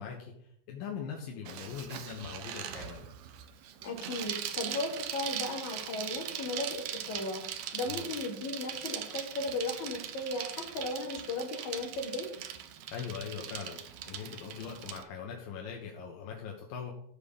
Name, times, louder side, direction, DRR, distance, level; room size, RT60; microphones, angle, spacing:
voice 1, 0.0-3.1 7.8-8.1 12.9-16.9, left 7 dB, 80° left, 0 dB, 3.0 m, -41 dB
Bicycle, 1.5-15.0, right 10 dB, 70° right, 1.7 m, -40 dB
voice 2, 3.8-7.4 7.7-12.3, left 2 dB, 60° left, -1 dB, 4.0 m, -36 dB
14.0 x 5.1 x 7.1 m, 0.72 s
omnidirectional pair, 4.0 m